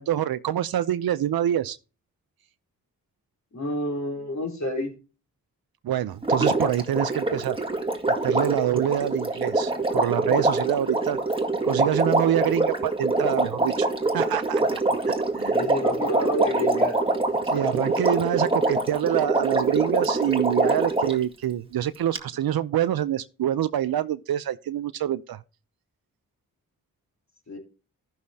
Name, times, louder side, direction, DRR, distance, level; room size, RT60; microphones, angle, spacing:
voice 1, 0.0-1.8 5.8-7.6 8.2-11.2 11.6-13.9 14.1-14.6 15.1-15.5 17.5-25.4, right 11 dB, 75° right, 0.6 m, -26 dB
voice 2, 3.5-4.9 15.5-17.0 18.1-18.2 27.5-27.6, left 1 dB, 45° left, 3.4 m, -29 dB
Water, 6.2-21.2 22.2-22.3, right 2 dB, 15° right, 1.8 m, -24 dB
14.5 x 6.3 x 2.8 m
supercardioid pair, 40°, 36 cm